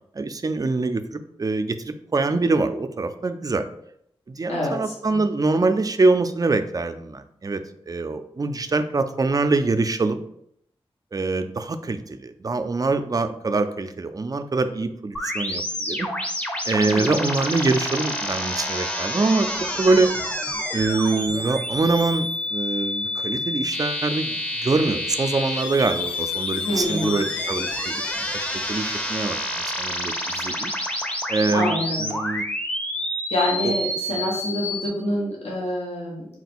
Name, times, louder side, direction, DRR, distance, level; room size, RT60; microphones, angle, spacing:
voice 1, 0.2-3.6 4.3-7.6 7.9-10.2 11.1-16.1 16.7-20.1 20.7-28.0 28.5-30.7 31.3-31.7 32.0-32.4 33.6-33.7, right 3 dB, 35° right, 9 dB, 0.4 m, -24 dB
voice 2, 4.5-5.2 16.8-17.3 26.6-27.1 31.5-32.1 33.3-36.3, left 1 dB, 85° left, -4 dB, 1.1 m, -26 dB
sound 1, 15.1-34.9, left 1 dB, 15° left, 0.7 m, -28 dB
4.2 x 2.2 x 4.2 m, 0.73 s
cardioid pair, 45°, 10 cm